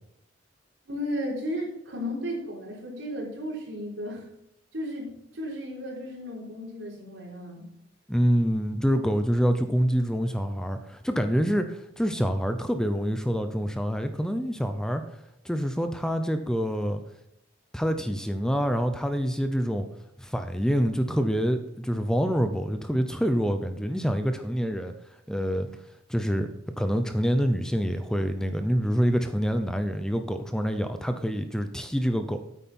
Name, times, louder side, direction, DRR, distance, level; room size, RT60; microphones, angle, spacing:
voice 1, 0.9-4.2 4.7-7.7, equal, 75° right, -2 dB, 3.9 m, -34 dB
voice 2, 8.1-15.0 15.4-17.0 17.7-19.9 20.2-24.9 25.3-25.7 26.1-26.5 26.8-32.4, equal, 5° left, 8 dB, 0.6 m, -26 dB
9.1 x 8.4 x 4.3 m, 0.83 s
head